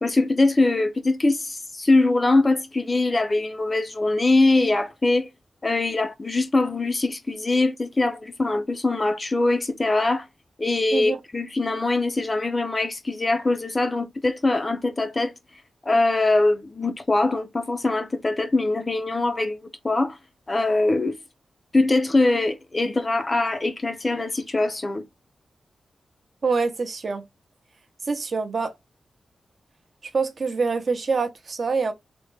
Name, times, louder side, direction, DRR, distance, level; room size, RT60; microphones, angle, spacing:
voice 1, 0.0-5.3 5.6-10.3 10.6-15.3 15.9-20.2 20.5-21.2 21.7-25.0, left 2 dB, 25° left, 0.4 m, -22 dB
voice 2, 26.4-27.2 28.1-28.7 30.1-31.9, right 4 dB, 40° right, 0.6 m, -25 dB
3.4 x 2.1 x 3.1 m
wide cardioid pair, 175°, 0 cm